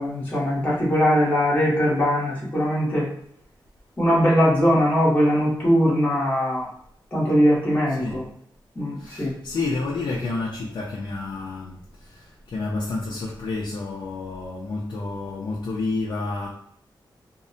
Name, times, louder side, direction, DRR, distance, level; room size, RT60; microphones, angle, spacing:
voice 1, 0.0-3.1 4.0-6.7 7.1-8.2 8.8-9.3, equal, 20° left, 0.9 m, -21 dB
voice 2, 8.0-8.3 8.9-16.5, left 3 dB, 65° left, 0.4 m, -30 dB
2.6 x 2.0 x 2.5 m
wide cardioid pair, 140°, 9 cm